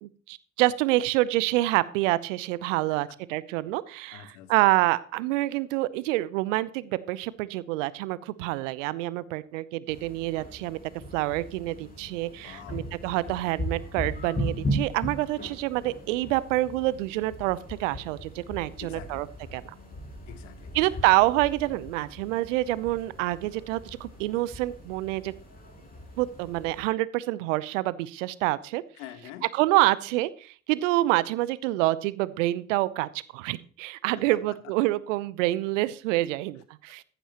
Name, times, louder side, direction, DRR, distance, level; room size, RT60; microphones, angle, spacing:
voice 1, 0.0-10.8 11.1-19.3 19.5-19.6 20.7-25.3 26.2-28.8 29.5-37.0, right 17 dB, 75° right, 19 dB, 0.8 m, -27 dB
voice 2, 4.1-4.7 12.4-12.9 18.8-19.3 20.3-21.0 28.9-29.5 34.1-34.7, left 11 dB, 75° left, 11 dB, 1.4 m, -46 dB
sound 1, 9.9-26.8, equal, 25° left, 7.1 m, -38 dB
14.5 x 11.0 x 3.0 m, 0.41 s
hypercardioid pair, 55°, 38 cm